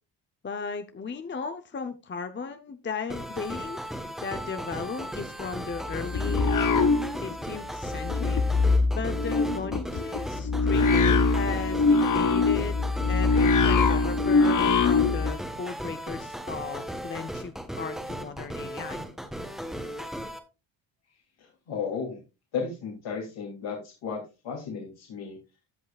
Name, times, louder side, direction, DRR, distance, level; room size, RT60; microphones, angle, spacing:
voice 1, 0.4-3.8 4.2-6.8 7.2-8.4 8.9-10.9 11.2-12.8 13.1-19.0, left 5 dB, 25° left, 8 dB, 0.7 m, -36 dB
sound 1, 3.1-20.4, equal, ahead, 1.3 m, -36 dB
sound 2, 5.7-7.6 7.8-15.3, left 4 dB, 40° left, 1.0 m, -23 dB
voice 2, 21.4-22.2 22.5-25.4, left 6 dB, 75° left, -2 dB, 3.0 m, -34 dB
16.0 x 5.4 x 2.4 m, 0.28 s
cardioid pair, 110°, 47 cm